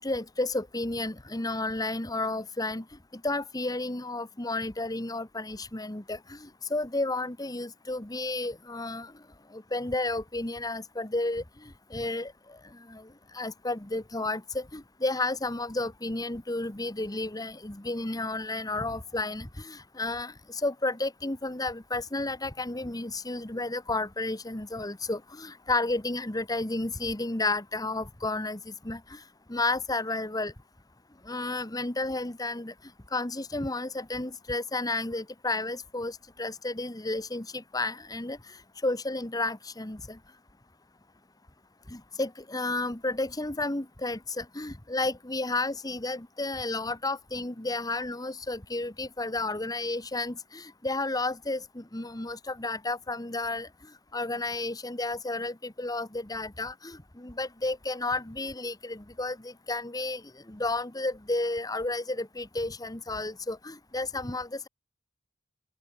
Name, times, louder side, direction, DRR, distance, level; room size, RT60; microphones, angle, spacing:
voice 1, 0.0-2.8 3.2-9.1 9.5-11.4 11.9-12.3 12.9-13.0 13.3-20.3 20.6-29.0 29.5-30.5 31.3-32.7 33.1-38.4 38.8-40.2 41.9-53.7 54.1-60.2 60.5-64.7, left 2 dB, 20° left, 1.4 m, -32 dB
open air
head